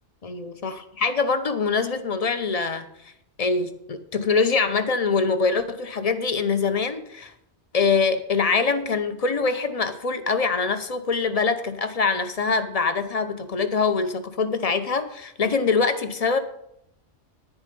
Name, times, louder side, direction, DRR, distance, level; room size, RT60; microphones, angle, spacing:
voice 1, 0.2-3.1 3.4-7.3 7.7-16.4, left 4 dB, 35° left, 10 dB, 0.9 m, -24 dB
10.0 x 9.6 x 5.3 m, 0.74 s
omnidirectional pair, 1.1 m